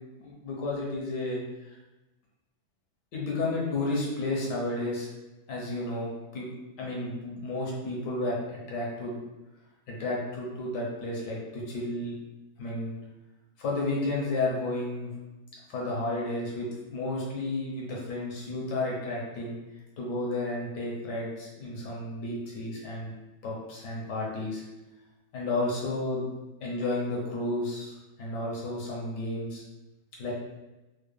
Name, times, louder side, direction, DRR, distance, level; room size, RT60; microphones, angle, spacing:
voice 1, 0.1-1.4 3.1-5.1 5.5-6.5 6.8-9.2 9.9-12.1 12.6-12.9 13.6-15.1 15.7-19.5 20.0-23.1 23.4-24.6 25.3-26.3 26.6-29.6 30.2-30.3, left 2 dB, 90° left, -4 dB, 1.5 m, -32 dB
4.0 x 2.1 x 3.3 m, 1.1 s
omnidirectional pair, 1.8 m